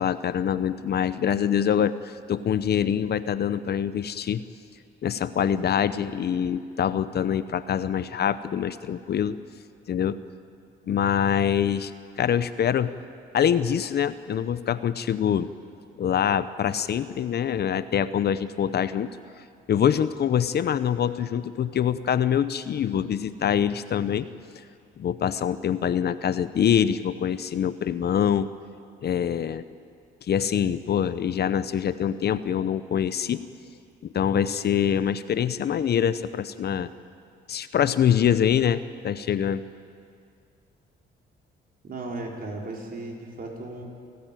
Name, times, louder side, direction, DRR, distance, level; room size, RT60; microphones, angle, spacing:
voice 1, 0.0-4.4 5.0-9.4 9.9-10.2 10.9-11.9 12.2-12.9 13.3-15.5 16.0-19.1 19.7-24.3 25.0-28.5 29.0-29.6 30.3-33.4 34.0-36.9 37.5-39.6, left 9 dB, 55° left, 14 dB, 0.8 m, -24 dB
voice 2, 41.8-43.8, right 2 dB, 50° right, 0 dB, 4.9 m, -36 dB
28.5 x 14.0 x 9.1 m, 2.3 s
cardioid pair, 90°, 20 cm